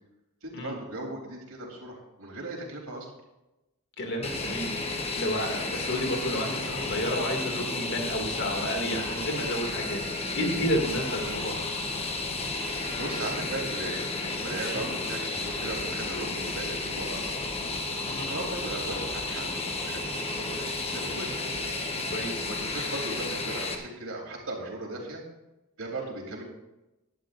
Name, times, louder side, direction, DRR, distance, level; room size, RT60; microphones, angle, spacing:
voice 1, 0.4-3.1 11.2-11.5 12.4-17.5 18.3-21.4 22.4-25.2 25.8-26.4, right 2 dB, 65° right, -1 dB, 3.6 m, -38 dB
voice 2, 4.0-4.7 5.2-10.0 10.3-11.7 14.7-14.9 18.0-18.3 22.1-22.5, equal, 55° left, 2 dB, 2.5 m, -31 dB
Fixed-wing aircraft airplane, 4.2-23.7, left 3 dB, 25° left, 1.2 m, -32 dB
18.5 x 11.0 x 2.6 m, 0.98 s
head